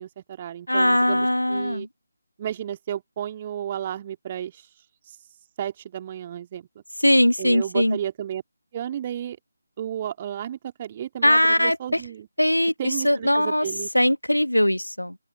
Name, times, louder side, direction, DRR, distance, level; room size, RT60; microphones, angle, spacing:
voice 1, 0.0-1.9 2.4-4.7 5.1-5.2 5.6-6.7 7.4-8.4 8.7-9.4 9.8-12.3 12.8-13.9, right 10 dB, 25° right, 2.2 m, -33 dB
voice 2, 0.7-1.9 7.0-8.0 11.2-12.0 12.4-12.7 13.0-13.7 13.9-15.2, equal, 85° left, 1.5 m, -20 dB
open air
figure-of-eight pair, 155°, 0 cm